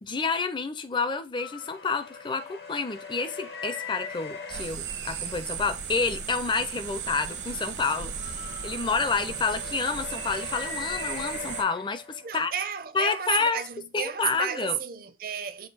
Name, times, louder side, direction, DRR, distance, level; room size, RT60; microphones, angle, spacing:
voice 1, 0.0-8.3 8.6-12.5 12.9-13.6 13.9-14.8, left 4 dB, 25° left, 0.5 m, -29 dB
sound 1, 1.4-4.7 7.0-12.6, left 6 dB, 60° left, 1.0 m, -40 dB
sound 2, 4.5-11.6, right 7 dB, 75° right, 1.0 m, -36 dB
voice 2, 12.2-15.7, right 8 dB, 55° right, 0.6 m, -33 dB
6.5 x 2.7 x 5.5 m
head